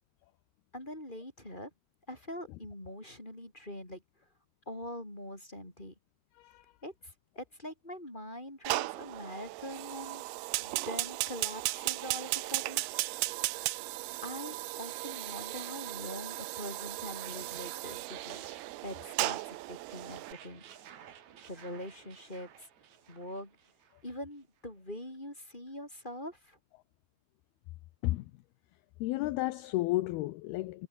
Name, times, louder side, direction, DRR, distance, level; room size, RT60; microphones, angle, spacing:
voice 1, 0.7-1.7 2.1-4.0 4.6-5.9 6.8-10.2 10.6-12.8 14.2-18.4 18.8-20.6 21.5-22.7 23.1-23.6 24.0-26.6, left 1 dB, 10° left, 4.9 m, -43 dB
voice 2, 6.4-6.7 28.0-28.3 29.0-30.9, left 18 dB, 80° left, 2.4 m, -32 dB
Fire, 8.6-20.3, right 21 dB, 85° right, 2.2 m, -36 dB
sound 1, 16.1-24.1, right 9 dB, 50° right, 2.5 m, -54 dB
omnidirectional pair, 5.2 m